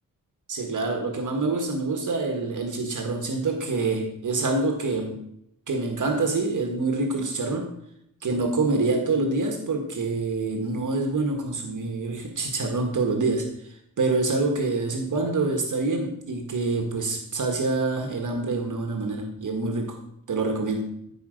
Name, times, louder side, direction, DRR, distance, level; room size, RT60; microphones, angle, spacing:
voice 1, 0.5-5.2 5.7-7.7 8.2-20.0 20.3-20.8, right 3 dB, 60° right, 4 dB, 1.6 m, -26 dB
14.0 x 5.1 x 6.5 m, 0.75 s
wide cardioid pair, 145°, 35 cm